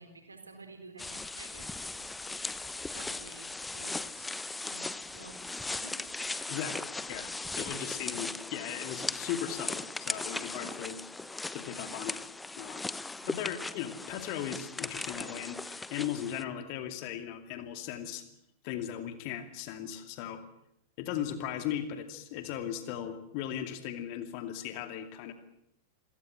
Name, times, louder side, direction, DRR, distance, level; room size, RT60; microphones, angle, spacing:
voice 1, 0.0-4.3 4.6-6.6 7.1-7.6 13.2-13.4, right 3 dB, 75° right, 7 dB, 4.0 m, -53 dB
sound 1, 1.0-16.4, left 3 dB, 10° left, 0.9 m, -38 dB
voice 2, 6.5-7.3 7.6-11.0 11.5-12.2 12.6-12.9 13.3-18.2 18.6-20.4 21.0-25.3, left 10 dB, 45° left, 8 dB, 2.5 m, -37 dB
28.0 x 17.5 x 7.8 m, 0.77 s
figure-of-eight pair, 90°, 0 cm